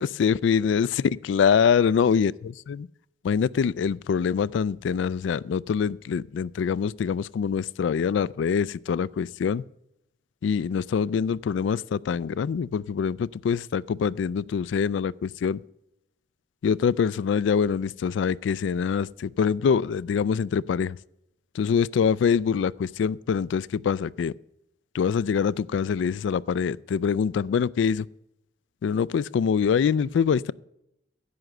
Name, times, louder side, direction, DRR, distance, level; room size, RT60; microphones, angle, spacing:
voice 1, 0.0-0.9 1.3-2.9 3.2-9.6 10.4-15.6 16.6-21.0 21.5-24.3 24.9-28.1 28.8-30.5, left 6 dB, 80° left, 0.3 m, -24 dB
11.0 x 7.9 x 6.5 m
head